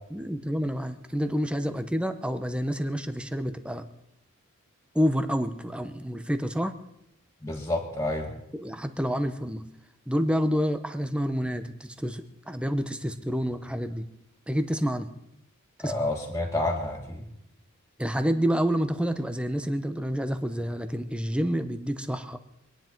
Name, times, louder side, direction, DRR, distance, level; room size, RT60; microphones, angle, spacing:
voice 1, 0.1-3.8 4.9-6.8 8.5-9.7 10.1-14.0 14.5-15.1 15.8-15.9 18.0-22.4, equal, 5° right, 9 dB, 0.8 m, -28 dB
voice 2, 7.4-8.3 15.8-17.2, left 1 dB, 15° left, -2 dB, 2.2 m, -29 dB
25.0 x 10.0 x 4.6 m, 0.80 s
head